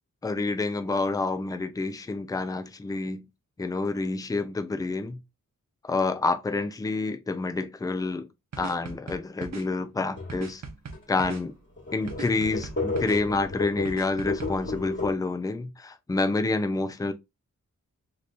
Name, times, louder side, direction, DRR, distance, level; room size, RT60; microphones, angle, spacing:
voice 1, 0.2-3.2 3.6-5.2 5.8-8.3 8.6-10.6 11.1-11.5 11.9-17.1, left 3 dB, 10° left, 0.4 m, -28 dB
sound 1, 8.5-9.6 10.3-11.4 12.1-13.2 13.8-14.5, right 4 dB, 60° right, 0.9 m, -39 dB
sound 2, 10.2-10.4 10.9-11.0 11.3-11.4 11.8-15.1, left 3 dB, 35° left, 1.4 m, -33 dB
3.3 x 2.8 x 2.5 m
wide cardioid pair, 105°, 31 cm